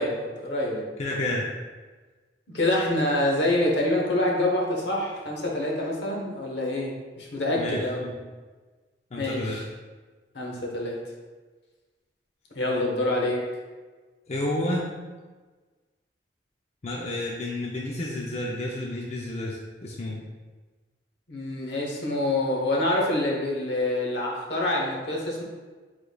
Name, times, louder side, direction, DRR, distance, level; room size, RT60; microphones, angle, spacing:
voice 1, 0.0-0.8 2.5-8.0 9.2-9.6 10.3-11.0 12.5-13.4 21.3-25.4, left 1 dB, 75° left, -1 dB, 0.9 m, -26 dB
voice 2, 1.0-1.5 7.5-8.2 9.1-9.6 14.3-14.9 16.8-20.2, left 1 dB, 40° left, -3 dB, 0.5 m, -30 dB
4.9 x 3.8 x 2.3 m, 1.3 s
head